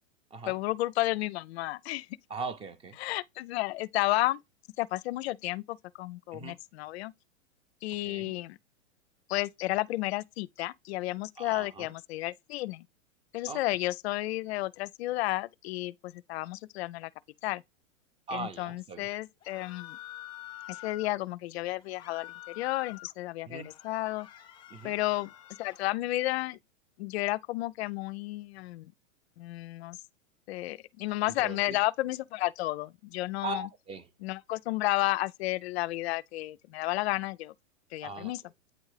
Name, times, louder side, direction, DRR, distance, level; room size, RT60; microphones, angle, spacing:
voice 1, 0.5-2.1 3.0-4.4 4.8-7.1 7.8-8.6 9.3-12.9 13.3-17.1 17.4-17.6 18.3-20.0 20.7-24.3 24.8-25.3 25.6-26.6 27.0-28.9 29.4-30.0 30.5-33.7 34.2-37.5 37.9-38.4, left 18 dB, 55° left, 0.5 m, -32 dB
voice 2, 2.3-3.0 6.3-6.6 8.0-8.3 11.4-11.9 13.5-13.6 18.3-19.1 23.5-23.7 24.7-25.0 31.4-31.8 33.4-34.1 38.0-38.3, right 3 dB, 15° right, 0.6 m, -39 dB
sound 1, 19.4-21.1 21.8-23.1 23.5-25.9, left 13 dB, 15° left, 1.0 m, -47 dB
8.8 x 3.5 x 3.2 m
hypercardioid pair, 125°, 39 cm